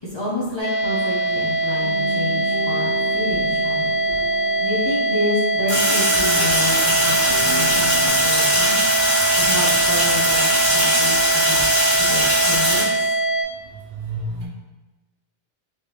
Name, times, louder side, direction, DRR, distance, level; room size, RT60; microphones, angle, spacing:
voice 1, 0.0-3.9 4.6-8.8 9.4-11.6 12.0-13.2, left 2 dB, 40° left, -7 dB, 0.4 m, -29 dB
sound 1, 0.6-13.4, right 2 dB, 15° right, 0.5 m, -22 dB
sound 2, 1.8-8.1, left 1 dB, 60° left, 1.0 m, -35 dB
Sink (filling or washing), 5.7-12.8, equal, 30° right, 1.3 m, -20 dB
voice 2, 13.9-14.5, right 2 dB, 85° right, -1 dB, 0.9 m, -29 dB
3.4 x 2.4 x 2.9 m, 1.2 s
omnidirectional pair, 1.0 m